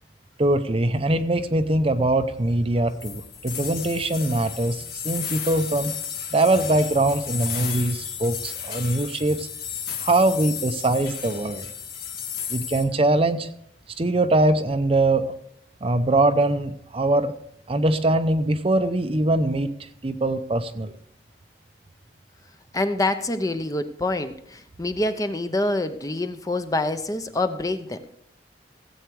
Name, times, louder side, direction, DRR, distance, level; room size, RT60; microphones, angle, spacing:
voice 1, 0.4-5.9 6.3-9.5 10.0-11.7 12.5-13.5 14.0-15.3 15.8-17.3 17.7-19.7 20.0-20.9, right 2 dB, 35° right, 10 dB, 0.7 m, -22 dB
sound 1, 3.0-12.8, left 8 dB, 60° left, 2.0 m, -33 dB
voice 2, 22.7-28.1, left 2 dB, 20° left, 9 dB, 0.7 m, -26 dB
16.5 x 8.1 x 4.7 m, 0.70 s
head